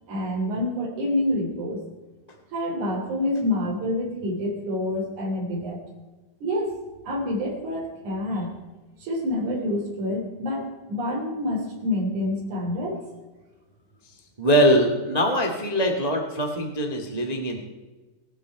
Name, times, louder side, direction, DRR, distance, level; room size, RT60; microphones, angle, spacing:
voice 1, 0.1-1.8 2.5-5.8 6.4-6.8 7.0-8.5 9.0-13.0, left 1 dB, 70° right, 0 dB, 4.7 m, -27 dB
voice 2, 14.4-17.6, equal, 25° right, 2 dB, 0.9 m, -22 dB
24.0 x 8.0 x 4.7 m, 1.2 s
omnidirectional pair, 3.6 m